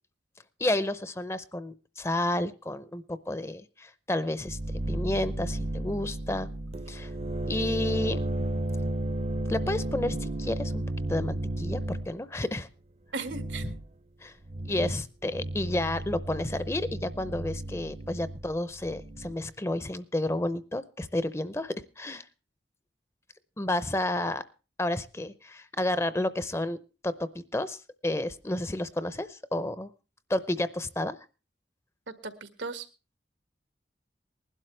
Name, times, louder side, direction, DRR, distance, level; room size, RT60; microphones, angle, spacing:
voice 1, 0.6-4.6 4.9-6.5 6.9-7.1 7.5-8.2 9.5-10.8 11.1-12.7 13.6-13.7 14.2-14.3 14.7-22.3 23.6-24.4 24.8-29.9 30.3-31.2, left 1 dB, 15° left, 14 dB, 0.6 m, -31 dB
sound 1, 4.5-12.1 13.2-13.8 14.4-15.1 15.3-19.3, right 1 dB, 35° right, 0.6 m, -33 dB
voice 2, 13.1-13.6 32.2-32.9, right 3 dB, 90° right, 9 dB, 1.7 m, -36 dB
20.0 x 12.0 x 3.2 m, 0.32 s
head